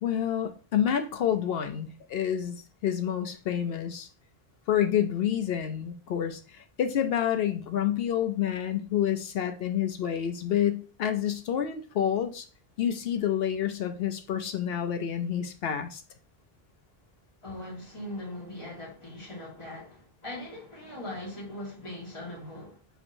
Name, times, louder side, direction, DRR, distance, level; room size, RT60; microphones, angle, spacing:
voice 1, 0.0-4.1 4.7-12.5 12.8-16.0, left 9 dB, 70° left, 0.7 m, -28 dB
voice 2, 17.4-22.8, left 1 dB, 30° left, 1.7 m, -40 dB
6.0 x 2.9 x 2.6 m
omnidirectional pair, 1.1 m